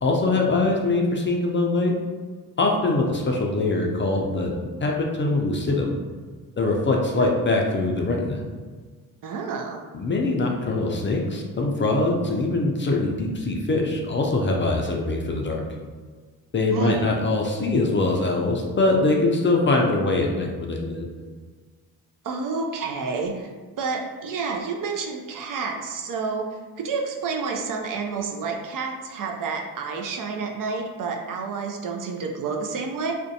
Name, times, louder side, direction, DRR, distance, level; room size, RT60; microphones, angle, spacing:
voice 1, 0.0-1.9 2.6-4.5 4.8-6.0 6.6-8.4 9.9-15.6 16.5-21.1, left 2 dB, 30° left, 0 dB, 0.4 m, -23 dB
voice 2, 9.2-9.8 16.7-17.0 22.2-23.5 23.8-26.4 26.8-33.1, right 4 dB, 55° right, 1 dB, 0.5 m, -29 dB
2.5 x 2.2 x 2.6 m, 1.4 s
supercardioid pair, 55°, 39 cm